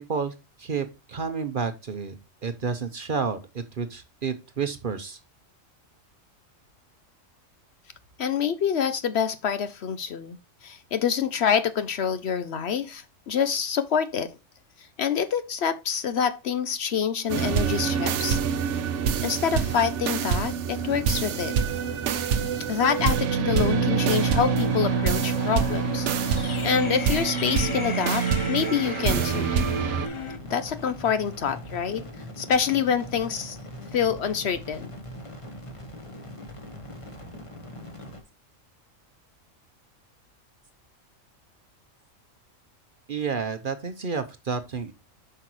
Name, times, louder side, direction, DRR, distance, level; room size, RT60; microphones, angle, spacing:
voice 1, 0.0-2.1 2.4-5.2 43.1-44.9, right 5 dB, 45° right, 0.8 m, -30 dB
voice 2, 8.2-14.3 14.8-18.4 19.2-21.5 22.7-29.5 30.5-32.0 32.4-33.6 33.9-34.9, left 7 dB, 60° left, 0.8 m, -26 dB
sound 1, 17.3-30.1, right 7 dB, 65° right, 1.0 m, -26 dB
sound 2, 20.7-38.2, left 1 dB, 25° left, 1.3 m, -41 dB
sound 3, 23.6-30.4, left 3 dB, 40° left, 0.4 m, -35 dB
7.9 x 5.6 x 3.0 m
omnidirectional pair, 1.4 m